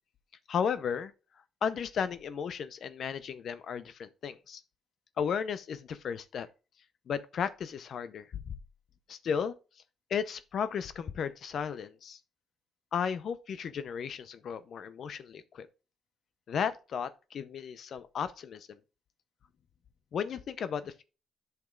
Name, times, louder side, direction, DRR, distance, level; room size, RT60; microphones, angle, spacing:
voice 1, 0.5-1.1 1.6-4.6 5.2-6.5 7.1-8.5 9.1-9.5 10.1-12.2 12.9-15.7 16.5-18.8 20.1-21.0, left 7 dB, 60° left, 0.6 m, -34 dB
10.5 x 5.9 x 2.4 m
cardioid pair, 90°, 0 cm